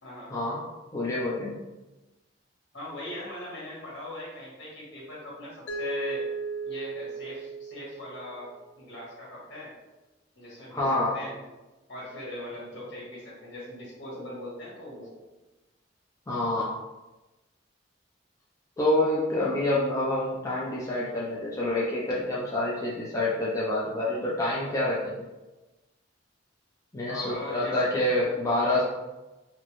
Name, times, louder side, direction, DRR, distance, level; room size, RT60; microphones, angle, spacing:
voice 1, 0.9-1.5 10.7-11.1 16.3-16.6 18.8-25.2 26.9-28.8, left 1 dB, 20° left, -7 dB, 0.5 m, -27 dB
voice 2, 2.7-6.2 6.6-9.7 10.3-11.4 11.9-15.1 27.1-27.8, left 1 dB, 65° left, -6 dB, 1.4 m, -40 dB
Mallet percussion, 5.7-8.6, right 3 dB, 85° left, 0.4 m, -35 dB
4.3 x 2.1 x 3.0 m, 1.1 s
head